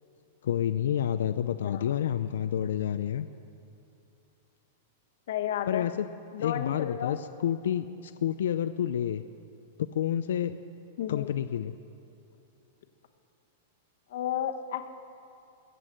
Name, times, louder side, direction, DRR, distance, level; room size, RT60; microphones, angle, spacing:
voice 1, 0.4-3.3 5.7-6.1 6.4-9.3 9.8-10.5 11.1-11.8, left 10 dB, 85° left, 10 dB, 0.5 m, -29 dB
voice 2, 1.6-1.9 5.3-5.9 6.3-7.2 11.0-11.3 14.1-14.9, left 10 dB, 65° left, 6 dB, 1.1 m, -32 dB
22.0 x 8.3 x 7.5 m, 2.7 s
supercardioid pair, 160°, 0 cm